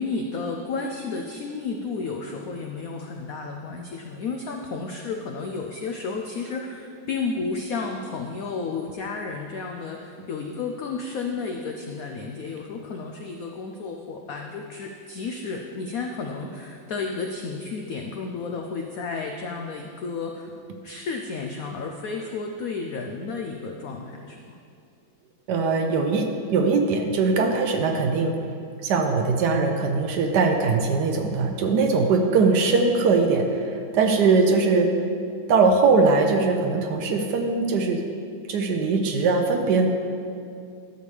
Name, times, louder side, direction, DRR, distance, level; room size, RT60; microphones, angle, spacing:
voice 1, 0.0-20.5 20.8-24.6, left 4 dB, 85° left, 2 dB, 0.7 m, -32 dB
voice 2, 25.5-28.4 28.8-35.0 35.5-38.1 38.5-39.9, right 4 dB, 70° right, 4 dB, 1.1 m, -21 dB
12.0 x 6.9 x 3.3 m, 2.5 s
omnidirectional pair, 2.1 m